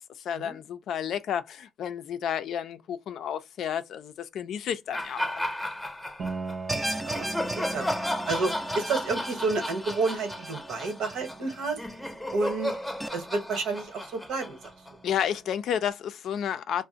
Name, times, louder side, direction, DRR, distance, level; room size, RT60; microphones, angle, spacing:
voice 1, 0.2-5.4 15.0-16.8, left 9 dB, 70° left, 0.4 m, -31 dB
sound 1, 4.9-6.6 7.1-15.3, left 1 dB, 5° left, 0.7 m, -34 dB
Piano, 6.2-15.8, right 4 dB, 45° right, 0.6 m, -43 dB
sound 2, 6.7-13.1, right 1 dB, 10° right, 0.3 m, -37 dB
voice 2, 6.7-7.9 8.3-11.8 12.3-12.8 13.1-14.6, right 3 dB, 90° right, 1.0 m, -30 dB
2.5 x 2.1 x 3.8 m
cardioid pair, 90°, 0 cm